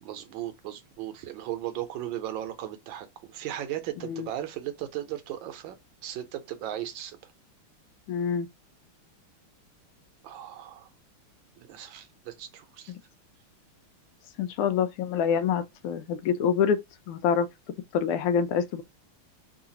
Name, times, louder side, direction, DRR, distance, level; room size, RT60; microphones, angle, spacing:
voice 1, 0.0-5.7 6.0-7.2 10.2-10.9 11.6-12.9, right 12 dB, 70° right, 1.3 m, -36 dB
voice 2, 8.1-8.5 14.4-16.8 17.1-17.5 17.9-18.8, left 7 dB, 85° left, 1.5 m, -26 dB
3.8 x 2.4 x 2.7 m
omnidirectional pair, 2.4 m